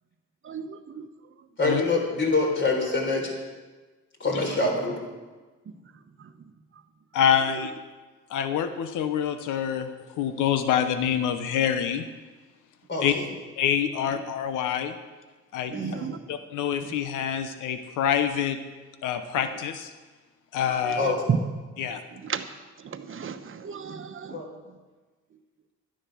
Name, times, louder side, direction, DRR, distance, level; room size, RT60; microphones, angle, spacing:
voice 1, 0.4-1.1 15.7-16.2 16.8-16.9 20.8-20.9 21.3-21.4 22.2-22.4 22.8-24.4, right 7 dB, 45° right, 8 dB, 1.1 m, -32 dB
voice 2, 1.6-3.3 4.2-5.0 12.9-13.2 15.7-16.1 21.0-21.2 24.3-24.5, left 3 dB, 40° left, 1 dB, 4.0 m, -25 dB
voice 3, 7.1-7.7 8.3-9.9 10.2-12.0 13.0-13.1 13.6-14.9 15.5-15.8 16.3-18.6 19.0-19.9 20.5-21.1 21.8-22.0, left 9 dB, 85° left, 9 dB, 0.9 m, -26 dB
12.5 x 10.0 x 6.2 m, 1.3 s
cardioid pair, 90°, 30 cm